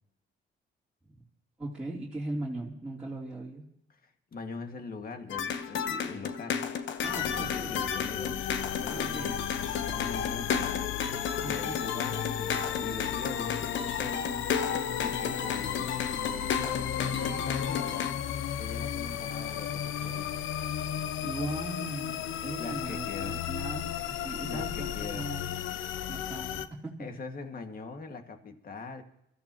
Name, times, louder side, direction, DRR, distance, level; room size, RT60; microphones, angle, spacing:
voice 1, 1.6-3.6 7.0-7.7 8.9-9.3 11.4-11.8 21.2-25.8 26.1-27.1, right 2 dB, 5° right, -7 dB, 3.3 m, -39 dB
voice 2, 3.9-6.7 7.3-8.3 8.8-11.0 11.4-14.4 14.9-18.1 18.6-20.3 22.6-23.4 24.5-25.3 27.0-29.0, left 4 dB, 45° left, 5 dB, 2.0 m, -42 dB
sound 1, 5.3-18.1, left 7 dB, 70° left, 1.2 m, -33 dB
sound 2, 7.0-26.7, left 10 dB, 85° left, 0.8 m, -34 dB
24.0 x 14.5 x 3.0 m, 0.76 s
cardioid pair, 90°, 20 cm